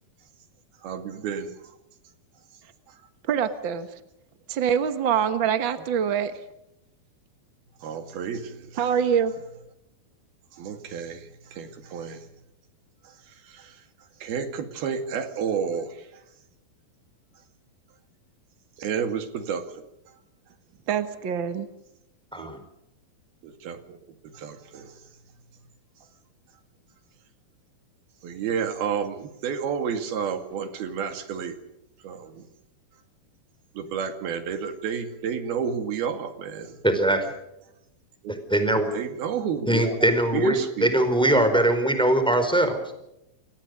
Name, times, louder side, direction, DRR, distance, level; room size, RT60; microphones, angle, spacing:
voice 1, 0.8-1.7 2.9-3.0 5.8-5.9 7.8-8.9 10.5-12.3 13.0-13.8 14.2-16.2 18.8-19.9 22.4-22.5 23.4-25.0 28.2-31.6 32.0-32.5 33.7-36.8 38.2-38.6 38.9-41.2, right 7 dB, 85° right, 7 dB, 4.2 m, -31 dB
voice 2, 3.3-3.9 4.5-6.3 8.8-9.3 20.9-21.7, right 8 dB, 60° right, 9 dB, 1.2 m, -24 dB
voice 3, 36.8-37.3 38.5-38.9 39.7-42.9, right 1 dB, ahead, 8 dB, 4.3 m, -21 dB
29.0 x 24.0 x 5.3 m, 0.85 s
omnidirectional pair, 4.2 m